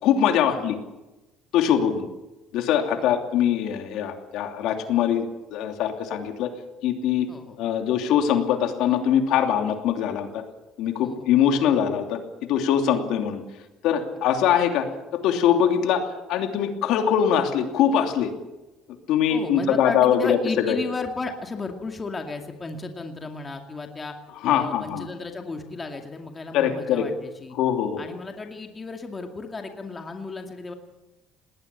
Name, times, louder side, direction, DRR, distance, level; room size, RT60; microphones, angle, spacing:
voice 1, 0.0-0.8 1.5-2.1 2.5-6.5 6.8-7.3 7.6-10.4 10.8-12.2 12.5-13.4 13.8-14.9 15.1-18.3 19.1-20.4 20.7-20.8 24.4-25.1 26.5-27.0 27.5-28.1, left 9 dB, 70° left, 5 dB, 2.8 m, -22 dB
voice 2, 19.3-24.1 24.5-27.6 28.0-30.7, left 3 dB, 20° left, 4 dB, 2.4 m, -34 dB
19.5 x 18.5 x 8.5 m, 1.0 s
cardioid pair, 140°, 0 cm